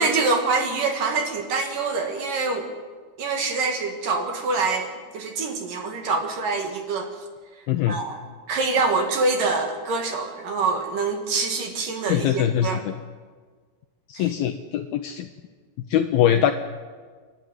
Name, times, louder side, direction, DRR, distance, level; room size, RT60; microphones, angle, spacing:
voice 1, 0.0-2.7 3.2-7.1 7.9-8.2 8.5-12.8 14.2-14.3, right 3 dB, 55° right, 4 dB, 3.0 m, -25 dB
voice 2, 12.1-12.9 14.1-15.3 15.9-16.5, left 10 dB, 80° left, 7 dB, 2.2 m, -22 dB
29.5 x 12.0 x 9.3 m, 1.5 s
omnidirectional pair, 5.2 m